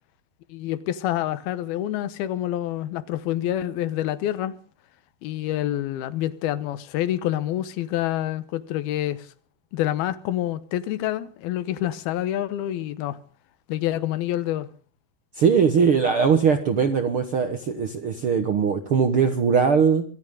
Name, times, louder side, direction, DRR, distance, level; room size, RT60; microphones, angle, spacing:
voice 1, 0.5-4.5 5.2-9.3 9.7-13.2 13.7-14.7, left 13 dB, 85° left, 2.9 m, -27 dB
voice 2, 15.4-20.0, right 6 dB, 60° right, 1.4 m, -20 dB
24.0 x 15.5 x 3.8 m
omnidirectional pair, 4.4 m